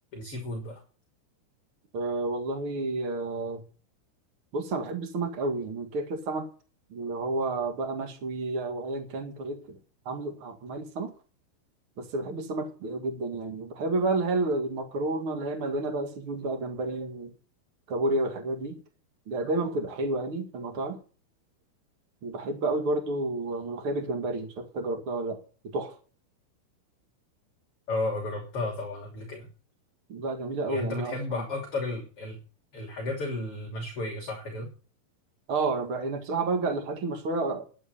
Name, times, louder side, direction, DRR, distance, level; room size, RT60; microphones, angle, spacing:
voice 1, 0.1-0.8 27.9-29.5 30.7-32.4 32.7-34.7, left 2 dB, 35° left, 0 dB, 3.1 m, -33 dB
voice 2, 1.9-3.6 4.5-6.5 6.9-9.8 10.0-11.1 12.0-17.3 17.9-18.8 19.3-21.0 22.2-26.0 30.1-31.4 35.5-37.6, right 2 dB, 85° right, 5 dB, 1.1 m, -30 dB
11.0 x 10.5 x 6.8 m, 0.38 s
omnidirectional pair, 5.9 m